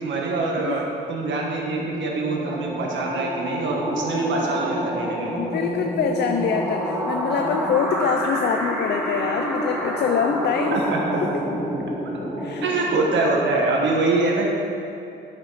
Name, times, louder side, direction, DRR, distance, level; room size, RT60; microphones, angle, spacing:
voice 1, 0.0-5.5 10.7-11.2 12.6-14.5, right 3 dB, 70° right, -1 dB, 1.6 m, -24 dB
sound 1, 1.5-13.9, right 1 dB, 5° right, 1.9 m, -28 dB
voice 2, 5.4-10.8 11.2-11.3 12.4-12.7, left 7 dB, 60° left, 5 dB, 0.5 m, -25 dB
9.4 x 6.1 x 4.1 m, 2.7 s
cardioid pair, 90°, 20 cm